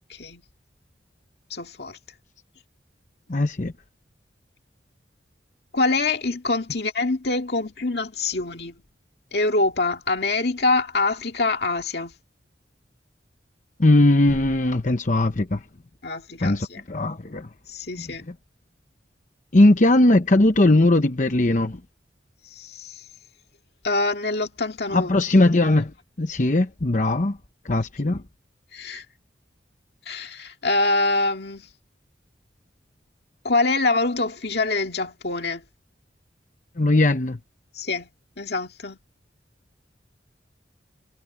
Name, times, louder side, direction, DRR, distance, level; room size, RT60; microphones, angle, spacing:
voice 1, 0.1-0.4 1.5-2.0 5.7-8.8 9.3-12.1 16.0-16.8 17.7-18.2 22.4-23.1 23.8-25.1 28.0-28.2 28.7-29.0 30.1-31.7 33.4-35.6 37.7-38.1 38.4-39.0, left 3 dB, 60° left, 2.2 m, -25 dB
voice 2, 3.3-3.7 13.8-15.6 16.4-17.5 18.0-18.1 19.5-21.8 24.9-25.9 26.2-27.4 27.6-28.2 36.8-37.4, left 2 dB, 45° left, 0.9 m, -19 dB
head